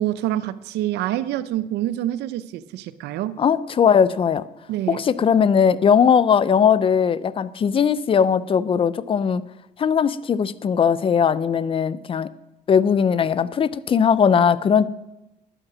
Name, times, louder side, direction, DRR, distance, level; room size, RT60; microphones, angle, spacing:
voice 1, 0.0-3.4 4.7-5.0, right 13 dB, 80° right, 15 dB, 0.6 m, -26 dB
voice 2, 3.4-4.4 4.9-9.4 9.8-12.3 12.7-14.9, left 7 dB, 35° left, 17 dB, 0.5 m, -19 dB
11.5 x 8.0 x 6.1 m, 0.97 s
cardioid pair, 110°, 17 cm